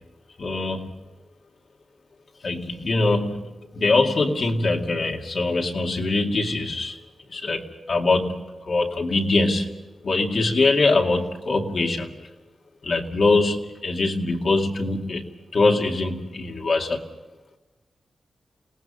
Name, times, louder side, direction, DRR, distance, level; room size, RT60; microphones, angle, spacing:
voice 1, 0.4-0.9 2.4-7.0 7.3-9.7 10.0-12.1 12.8-15.3 15.5-17.0, left 3 dB, 55° left, 1 dB, 2.4 m, -23 dB
29.0 x 18.5 x 5.5 m, 1.1 s
wide cardioid pair, 110°, 0 cm